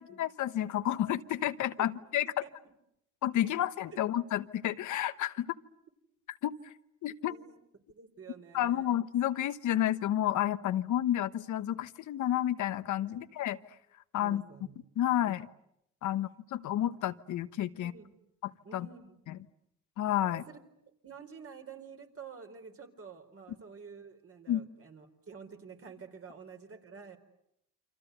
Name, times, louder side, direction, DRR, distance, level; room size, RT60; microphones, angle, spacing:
voice 1, 0.2-2.4 3.2-5.5 6.4-6.5 7.0-7.3 8.5-13.6 14.1-14.4 15.0-15.5 16.0-17.9 18.4-18.9 19.3-19.4 20.0-20.4 24.5-24.6, left 12 dB, 75° left, 12 dB, 1.1 m, -30 dB
voice 2, 7.9-9.0 13.1-13.2 14.2-14.7 17.7-18.1 18.6-19.2 20.3-20.6 21.0-27.2, right 6 dB, 50° right, 5 dB, 4.3 m, -49 dB
28.5 x 25.5 x 8.1 m, 0.78 s
cardioid pair, 90°, 30 cm